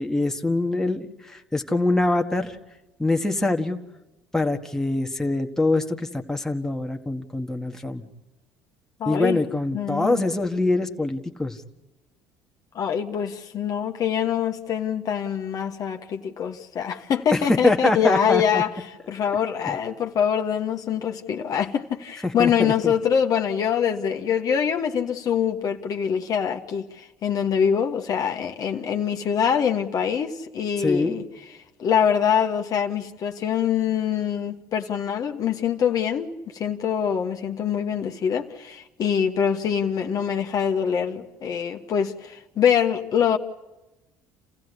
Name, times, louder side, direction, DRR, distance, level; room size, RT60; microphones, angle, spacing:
voice 1, 0.0-2.6 3.0-3.8 4.3-8.0 9.0-11.6 17.3-18.6 19.7-19.8 22.2-22.9 30.8-31.1, left 2 dB, 5° left, 1.7 m, -24 dB
voice 2, 9.0-9.4 9.7-10.2 12.7-18.7 19.1-31.2 31.8-43.4, left 8 dB, 50° left, 1.4 m, -24 dB
29.0 x 15.5 x 9.9 m
supercardioid pair, 80°, 8 cm